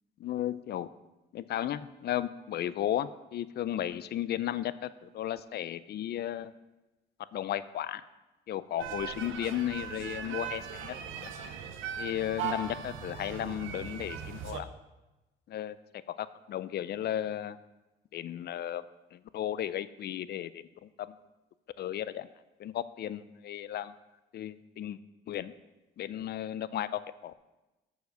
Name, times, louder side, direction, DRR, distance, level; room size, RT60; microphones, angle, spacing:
voice 1, 0.2-0.9 1.3-6.5 7.3-8.0 8.5-11.0 11.2-11.3 12.0-14.7 15.5-17.6 18.1-18.8 19.1-21.1 21.8-22.3 22.6-24.0 24.3-25.0 25.3-25.5 26.0-27.3, left 11 dB, 55° left, 16 dB, 0.4 m, -34 dB
sound 1, 8.8-14.6, right 7 dB, 85° right, 0.7 m, -39 dB
6.5 x 4.8 x 6.8 m, 1.0 s
cardioid pair, 90°, 20 cm